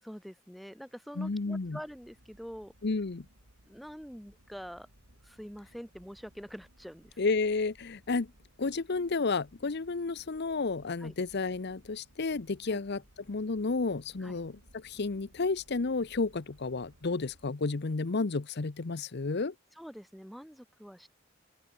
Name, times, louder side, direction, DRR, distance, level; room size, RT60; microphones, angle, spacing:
voice 1, 0.0-2.7 3.7-4.9 5.2-7.3 11.0-11.1 12.7-12.8 14.2-14.4 19.8-21.1, equal, ahead, 4.2 m, -45 dB
voice 2, 1.2-1.8 2.8-3.2 7.2-8.3 8.6-13.0 13.3-19.5, left 3 dB, 55° left, 0.8 m, -31 dB
sound 1, 1.2-17.5, right 1 dB, 75° right, 5.0 m, -62 dB
open air
head